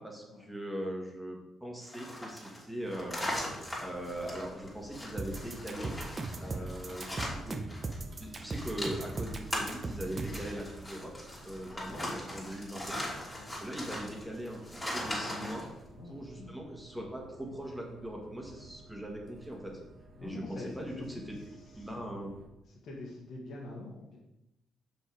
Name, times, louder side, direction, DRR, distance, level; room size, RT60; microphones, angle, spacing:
voice 1, 0.0-3.2 3.8-6.0 6.4-7.6 8.2-11.1 11.4-13.0 13.6-15.7 16.1-19.8 20.2-22.4, right 1 dB, 5° right, 0 dB, 1.9 m, -40 dB
sound 1, 1.8-8.0 8.2-15.7, left 1 dB, 15° left, 2.8 m, -40 dB
sound 2, 3.0-22.5, right 1 dB, 50° right, 1.7 m, -54 dB
sound 3, 5.2-10.5, right 3 dB, 30° right, 0.9 m, -37 dB
voice 2, 15.1-16.6 20.2-21.1 21.3-21.9 22.6-24.2, left 2 dB, 65° left, -2 dB, 2.0 m, -46 dB
6.1 x 5.5 x 4.9 m, 0.88 s
cardioid pair, 90°, 0 cm